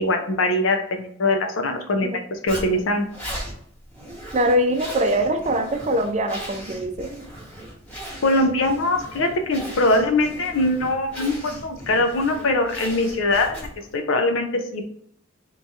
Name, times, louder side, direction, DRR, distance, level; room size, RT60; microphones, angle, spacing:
voice 1, 0.0-3.1 8.2-14.9, left 2 dB, 80° left, 5 dB, 0.6 m, -22 dB
Zipper (clothing), 2.5-13.9, equal, 5° left, 1.2 m, -38 dB
voice 2, 4.3-7.1, right 1 dB, 35° right, 5 dB, 0.5 m, -22 dB
3.1 x 2.8 x 3.5 m, 0.66 s
head